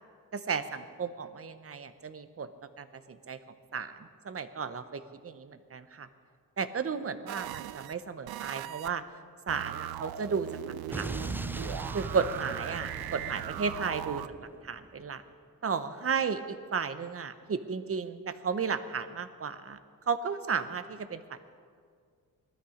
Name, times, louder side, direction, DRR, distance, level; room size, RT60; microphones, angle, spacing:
voice 1, 0.3-2.5 2.8-3.4 3.7-3.9 4.2-6.1 6.6-9.0 9.5-11.4 11.9-14.2 14.6-15.2 15.6-19.8 20.1-21.4, right 6 dB, 40° right, 11 dB, 0.9 m, -34 dB
sound 1, 7.3-7.9 8.3-8.9 9.5-14.3, right 13 dB, 85° right, 0.5 m, -39 dB
Explosion, 10.9-15.0, right 2 dB, 5° right, 0.3 m, -40 dB
19.0 x 13.0 x 5.1 m, 2.1 s
cardioid pair, 95°, 36 cm